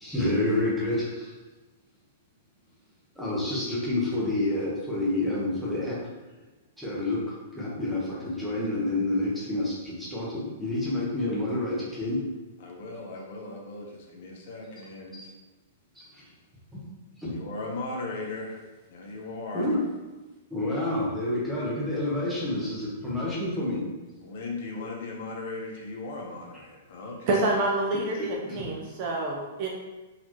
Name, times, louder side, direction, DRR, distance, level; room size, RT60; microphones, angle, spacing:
voice 1, 0.0-1.3 3.2-6.0 6.8-7.2 7.5-12.2 15.1-15.2 16.0-16.2 16.7-16.8 17.2-17.3 19.5-19.8 20.5-23.8 28.5-28.7, left 1 dB, ahead, -8 dB, 0.7 m, -28 dB
voice 2, 12.6-15.3 17.3-18.6 18.9-19.7 24.2-27.4, left 2 dB, 45° left, 0 dB, 0.6 m, -37 dB
voice 3, 27.3-28.2 28.5-29.7, right 2 dB, 30° right, -1 dB, 0.4 m, -27 dB
4.0 x 2.8 x 3.0 m, 1.2 s
hypercardioid pair, 175°, 0 cm